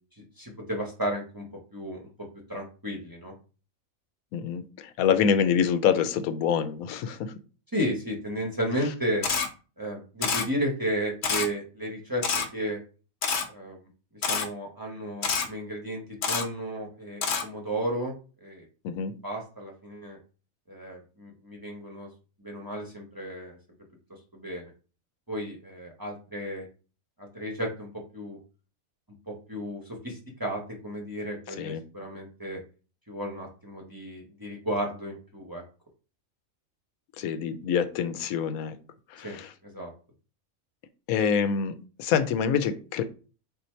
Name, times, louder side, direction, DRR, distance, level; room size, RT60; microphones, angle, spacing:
voice 1, 0.4-1.5 1.7-3.3 7.7-9.3 9.8-12.2 12.5-12.8 13.5-18.1 18.4-18.6 19.2-20.2 20.7-22.1 22.4-23.6 24.3-24.7 25.3-26.7 27.2-28.4 29.3-32.6 33.1-35.6 39.2-39.9, equal, 20° right, -1 dB, 0.9 m, -33 dB
voice 2, 4.3-7.3 18.8-19.1 31.6-31.8 37.2-38.8 39.1-39.5 41.1-43.0, left 7 dB, 85° left, 10 dB, 1.0 m, -26 dB
Camera, 9.2-9.5 10.2-10.5 11.2-11.5 12.2-12.5 13.2-13.4 14.2-14.5 15.2-15.5 16.2-16.4 17.2-17.4, left 5 dB, 55° left, 0.9 m, -26 dB
4.1 x 2.7 x 4.4 m, 0.35 s
omnidirectional pair, 1.5 m